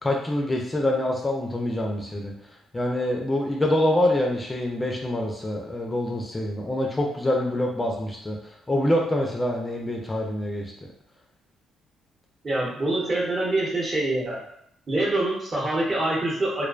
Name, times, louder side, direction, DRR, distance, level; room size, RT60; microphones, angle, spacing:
voice 1, 0.0-2.3 2.7-10.7, left 1 dB, 20° left, 0 dB, 0.4 m, -25 dB
voice 2, 12.4-14.4 14.9-16.6, right 2 dB, 40° right, -3 dB, 0.8 m, -25 dB
2.4 x 2.1 x 2.4 m, 0.72 s
cardioid pair, 90°, 0 cm